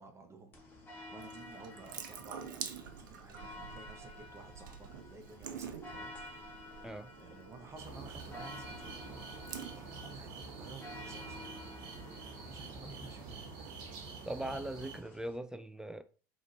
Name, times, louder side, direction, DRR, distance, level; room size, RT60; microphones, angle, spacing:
voice 1, 0.0-6.6 7.2-9.2 9.5-11.5 12.3-13.5, right 3 dB, 25° right, 0.9 m, -54 dB
sound 1, 0.5-15.4, left 1 dB, 20° left, 1.5 m, -51 dB
Water tap faucet / Sink (filling or washing) / Drip, 1.2-11.0, right 8 dB, 80° right, 0.6 m, -48 dB
sound 2, 7.8-15.0, right 4 dB, 55° right, 1.3 m, -47 dB
voice 2, 14.3-16.0, right 1 dB, 5° right, 0.3 m, -40 dB
4.9 x 2.9 x 2.7 m
hypercardioid pair, 85°, 11 cm